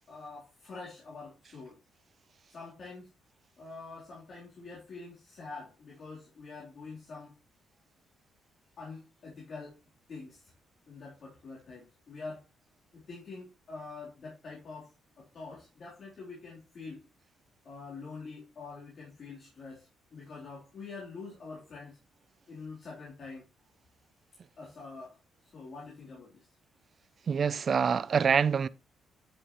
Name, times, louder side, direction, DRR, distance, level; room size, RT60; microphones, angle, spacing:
voice 1, 0.1-1.8 2.5-3.1 3.6-7.3 8.8-9.8 10.1-10.5 10.9-12.5 12.9-17.0 17.6-22.0 22.5-23.4 24.6-25.2 25.5-26.5, left 4 dB, 50° left, 3.7 m, -45 dB
voice 2, 27.3-28.7, right 6 dB, 45° right, 0.5 m, -25 dB
11.0 x 6.7 x 3.1 m
cardioid pair, 90°, 0 cm